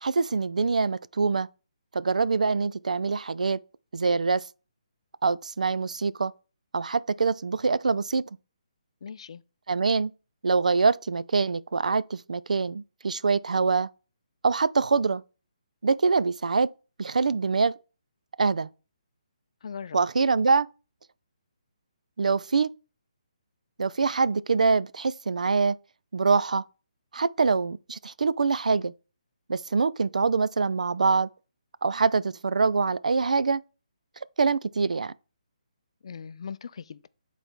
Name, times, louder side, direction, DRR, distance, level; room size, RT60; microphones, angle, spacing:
voice 1, 0.0-1.5 1.9-3.6 3.9-4.4 5.2-6.3 6.7-8.2 9.7-10.1 10.4-13.9 14.4-15.2 15.8-16.7 17.0-17.7 18.4-18.7 19.9-20.7 22.2-22.7 23.8-25.8 26.1-26.6 27.1-28.9 29.5-31.3 31.8-33.6 34.4-35.1, right 4 dB, 85° right, 0.4 m, -24 dB
voice 2, 9.0-9.4 19.6-20.0 36.0-37.1, left 6 dB, 50° left, 0.4 m, -39 dB
7.9 x 4.1 x 4.5 m
hypercardioid pair, 165°, 4 cm